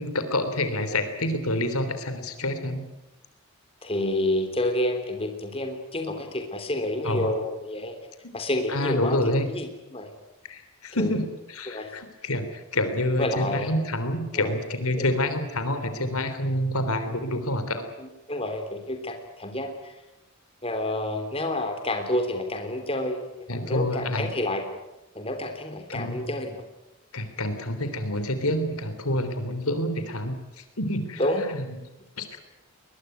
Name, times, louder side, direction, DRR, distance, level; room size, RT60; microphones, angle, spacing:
voice 1, 0.0-2.9 7.0-7.3 8.7-9.5 10.5-17.8 23.5-24.3 25.9-26.2 27.1-31.2 31.5-31.7 32.2-32.3, left 1 dB, 80° left, 9 dB, 3.5 m, -27 dB
voice 2, 3.8-7.9 8.3-9.2 9.5-10.1 11.0-11.2 11.7-11.9 13.2-13.8 14.3-14.6 14.9-15.1 18.0-20.0 20.6-23.2 23.6-24.6 25.2-26.6 31.2-31.5, left 1 dB, 25° left, 5 dB, 3.3 m, -29 dB
22.0 x 21.5 x 9.4 m, 0.96 s
head